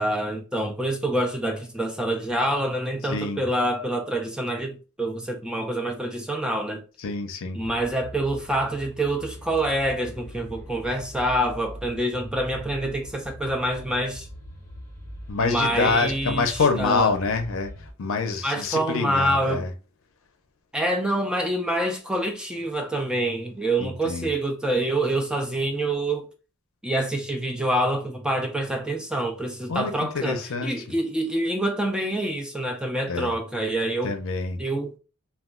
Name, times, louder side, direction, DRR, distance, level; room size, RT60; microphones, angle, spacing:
voice 1, 0.0-6.8 7.5-14.3 15.4-17.1 18.4-19.6 20.7-26.3 26.8-34.1 34.6-34.9, right 1 dB, 5° right, 0.3 m, -26 dB
voice 2, 3.1-3.4 7.0-7.6 15.3-19.7 23.8-24.3 29.7-30.8 33.1-33.3 34.0-34.6, left 4 dB, 65° left, 0.5 m, -26 dB
sound 1, 7.6-17.9, equal, 15° left, 0.7 m, -42 dB
2.3 x 2.2 x 3.6 m
head